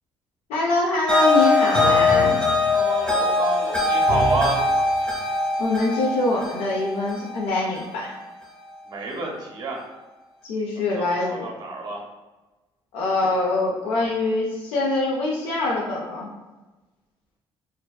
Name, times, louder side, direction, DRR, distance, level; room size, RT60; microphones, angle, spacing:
voice 1, 0.5-2.4 5.6-8.2 10.4-11.5 12.9-16.3, left 2 dB, 90° left, -3 dB, 0.4 m, -24 dB
sound 1, 1.1-8.2, left 3 dB, 10° left, 0.6 m, -22 dB
voice 2, 2.7-4.6 8.9-9.8 10.9-12.0, right 3 dB, 45° right, 0 dB, 0.6 m, -28 dB
2.5 x 2.2 x 2.2 m, 1.1 s
cardioid pair, 90°, 10 cm